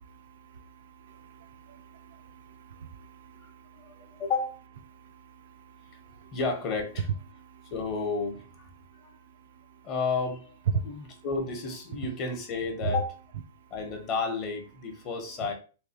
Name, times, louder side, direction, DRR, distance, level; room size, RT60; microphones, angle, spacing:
voice 1, 1.1-3.6 4.0-4.1 5.0-5.1 6.0-6.3 7.3-7.7 12.8-12.9, right 7 dB, 70° right, 0.4 m, -43 dB
voice 2, 3.8-4.6 6.3-7.1 7.7-8.7 8.9-9.2 9.8-10.5 10.8-13.2 13.7-15.5, left 4 dB, 35° left, 1.0 m, -32 dB
3.4 x 2.8 x 2.8 m
hypercardioid pair, 135°, 0 cm